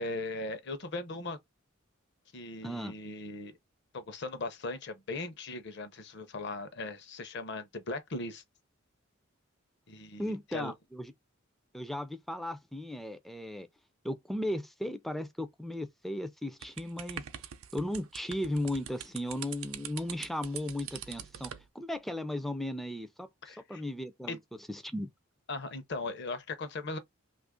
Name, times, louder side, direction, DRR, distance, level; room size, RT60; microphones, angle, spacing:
voice 1, 0.0-1.4 2.3-3.5 3.9-8.4 9.9-10.7 23.4-23.8 24.3-24.4 25.5-27.0, left 2 dB, 55° left, 0.7 m, -38 dB
voice 2, 2.6-2.9 10.2-11.1 11.7-13.7 14.0-17.2 17.7-24.4 24.7-25.1, left 1 dB, ahead, 0.3 m, -36 dB
sound 1, 16.6-21.7, right 10 dB, 75° right, 0.5 m, -43 dB
2.8 x 2.5 x 3.6 m
head